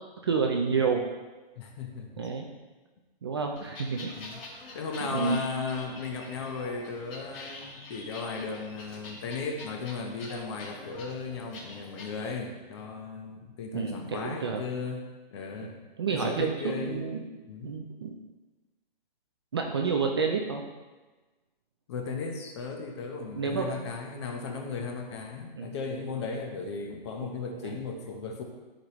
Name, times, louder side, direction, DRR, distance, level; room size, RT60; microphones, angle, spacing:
voice 1, 0.2-1.1 2.2-2.5 3.2-4.1 5.0-5.4 13.7-14.6 15.6-15.7 16.0-17.2 17.6-18.1 19.5-20.6 23.4-23.7 25.6-25.7, right 5 dB, 25° right, 2 dB, 0.4 m, -29 dB
voice 2, 1.6-2.3 4.1-4.4 4.7-15.0 15.3-15.8 16.1-17.1 17.5-17.8 21.9-28.4, left 4 dB, 30° left, 3 dB, 1.0 m, -36 dB
sound 1, 3.6-12.1, left 2 dB, 70° left, 2.8 m, -45 dB
13.0 x 5.1 x 3.0 m, 1.2 s
hypercardioid pair, 165°, 30 cm